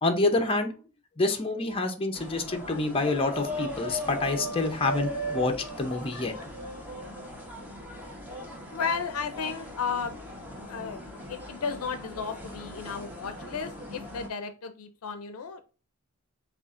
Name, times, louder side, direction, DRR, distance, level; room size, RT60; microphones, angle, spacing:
voice 1, 0.0-0.7 1.2-6.3, left 3 dB, 25° left, 4 dB, 0.6 m, -27 dB
sound 1, 2.1-14.3, equal, 10° right, 1.0 m, -38 dB
voice 2, 8.7-10.2 10.6-11.0 11.3-15.6, left 6 dB, 80° left, 10 dB, 0.5 m, -34 dB
6.9 x 2.4 x 2.5 m, 0.36 s
head